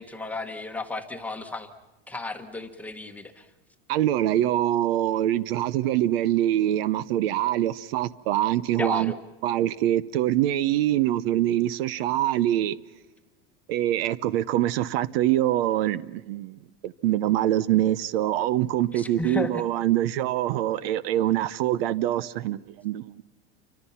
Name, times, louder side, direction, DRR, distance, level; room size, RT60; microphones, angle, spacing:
voice 1, 0.0-1.7 2.1-3.5 8.8-9.1 18.9-19.6, left 3 dB, 5° left, 1.2 m, -33 dB
voice 2, 3.9-9.1 9.4-12.8 13.7-23.2, right 13 dB, 60° right, 0.9 m, -24 dB
29.5 x 25.0 x 5.7 m
supercardioid pair, 175°, 32 cm